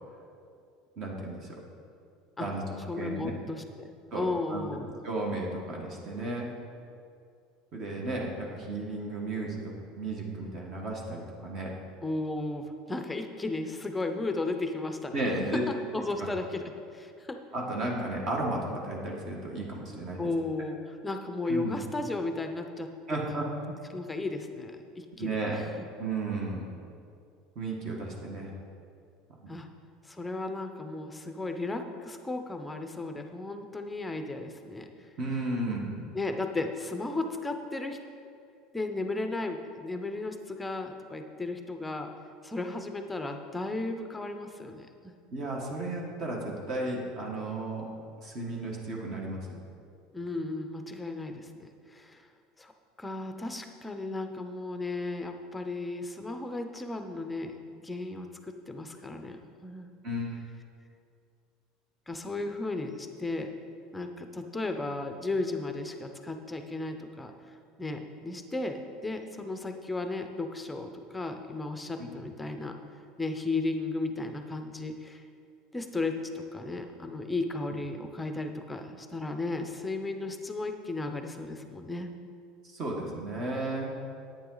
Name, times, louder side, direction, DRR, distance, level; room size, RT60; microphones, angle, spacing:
voice 1, 1.0-1.6 2.4-2.6 3.0-3.3 4.1-4.6 5.0-6.5 7.7-11.7 15.1-15.6 17.5-20.2 21.5-21.8 23.1-23.8 25.2-25.6 26.0-26.7 27.5-28.5 29.4-29.5 35.2-35.9 45.3-47.9 48.2-49.5 60.0-60.3 82.6-83.9, right 2 dB, 40° right, -1 dB, 1.5 m, -34 dB
voice 2, 2.9-3.9 4.1-5.0 12.0-15.2 15.5-16.6 16.9-17.4 20.2-23.2 23.9-25.7 29.5-29.7 30.0-34.9 36.1-38.0 38.7-42.1 42.4-45.1 50.1-52.3 52.6-52.7 53.0-59.9 62.1-63.5 63.9-75.2 75.7-82.1, left 2 dB, 10° left, 6 dB, 0.7 m, -35 dB
10.0 x 8.9 x 3.9 m, 2.4 s
cardioid pair, 145°, 0 cm